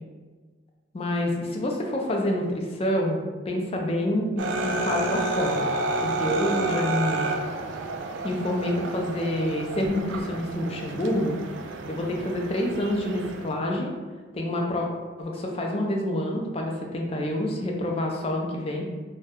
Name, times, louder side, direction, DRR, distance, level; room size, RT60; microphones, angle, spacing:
voice 1, 0.9-5.7 6.0-7.3 8.2-11.4 11.9-13.9 14.3-14.9 15.2-18.8, left 1 dB, 30° left, 0 dB, 0.4 m, -27 dB
sound 1, 4.4-13.5, right 2 dB, 75° right, 0.3 m, -30 dB
2.6 x 2.1 x 3.5 m, 1.4 s
head